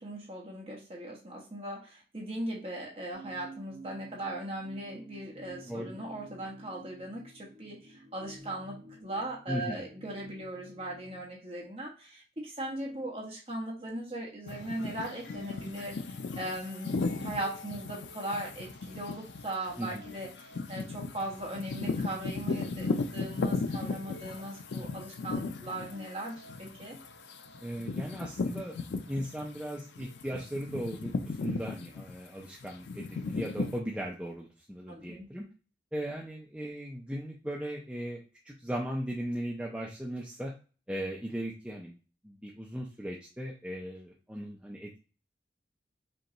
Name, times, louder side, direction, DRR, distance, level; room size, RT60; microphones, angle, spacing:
voice 1, 0.0-27.0 34.9-35.3, right 1 dB, 35° right, -2 dB, 1.2 m, -39 dB
sound 1, 3.1-11.3, right 1 dB, 90° right, 1.7 m, -51 dB
voice 2, 5.7-6.0 9.5-9.9 19.8-20.0 27.6-35.4 35.9-38.2 38.4-40.5 40.9-42.0 42.2-45.0, equal, 5° right, -3 dB, 0.5 m, -37 dB
sound 2, 14.5-29.6 30.0-33.8, left 3 dB, 85° left, 0.4 m, -36 dB
5.2 x 2.3 x 2.9 m, 0.36 s
head